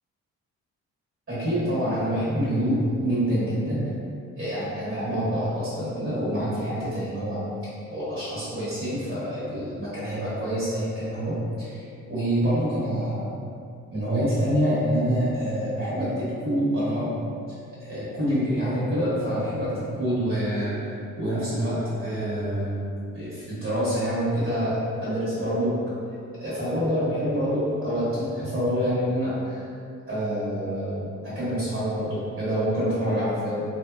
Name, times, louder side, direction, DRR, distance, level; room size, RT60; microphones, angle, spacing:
voice 1, 1.3-3.8 4.4-7.4 7.9-11.8 12.1-13.3 13.9-17.1 17.8-22.8 23.1-25.9 26.4-29.6 30.1-33.6, equal, 45° right, -11 dB, 1.0 m, -26 dB
2.5 x 2.2 x 2.2 m, 2.4 s
cardioid pair, 105°, 30 cm